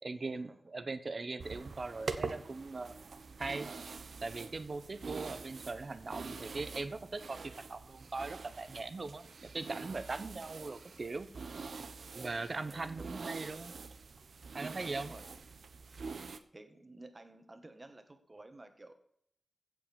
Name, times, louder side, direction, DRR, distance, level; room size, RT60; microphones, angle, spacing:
voice 1, 0.0-2.9 3.4-3.7 4.2-11.3 12.1-13.7 14.5-15.1, right 3 dB, 50° right, 12 dB, 1.2 m, -40 dB
sound 1, 1.4-16.4, right 4 dB, 75° right, 1.0 m, -45 dB
voice 2, 12.7-13.2 14.9-15.3 16.5-18.9, right 2 dB, 30° right, 8 dB, 1.8 m, -53 dB
16.0 x 5.9 x 7.0 m, 0.70 s
wide cardioid pair, 100°, 0 cm